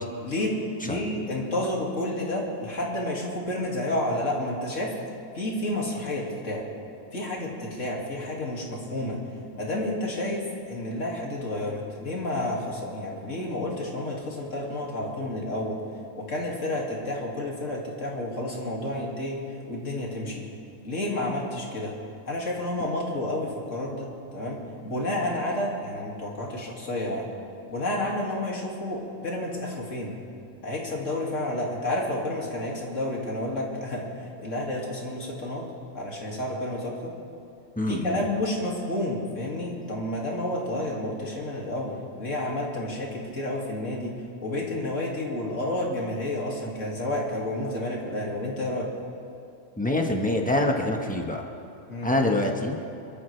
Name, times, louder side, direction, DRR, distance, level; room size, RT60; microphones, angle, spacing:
voice 1, 0.2-0.6 0.8-5.0 5.3-6.7 7.1-9.2 9.5-15.8 16.1-20.4 20.8-21.9 22.3-27.3 27.7-30.2 30.6-35.7 35.9-37.1 37.9-48.9 51.9-52.1, left 1 dB, 85° left, -2 dB, 2.8 m, -30 dB
voice 2, 37.8-38.2 49.8-51.4 52.0-52.7, left 1 dB, 5° left, 1 dB, 1.3 m, -25 dB
25.0 x 14.0 x 3.4 m, 2.7 s
omnidirectional pair, 1.3 m